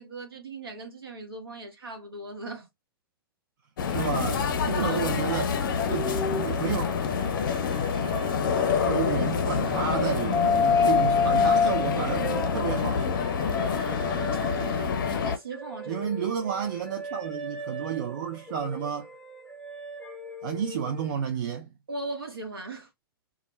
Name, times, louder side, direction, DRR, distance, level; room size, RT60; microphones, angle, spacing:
voice 1, 0.0-2.7 4.8-5.2 13.4-14.0 14.6-16.0 21.9-22.9, right 2 dB, 70° right, 1.1 m, -39 dB
sound 1, 3.8-15.4, left 6 dB, 60° left, 0.5 m, -27 dB
voice 2, 3.9-5.5 5.9-6.9 8.9-13.1 15.9-19.1 20.4-21.7, right 8 dB, 55° right, 0.5 m, -31 dB
sound 2, 5.9-9.5 9.9-15.1 15.5-21.1, left 5 dB, 5° left, 0.6 m, -30 dB
2.3 x 2.1 x 3.1 m
figure-of-eight pair, 105°, 13 cm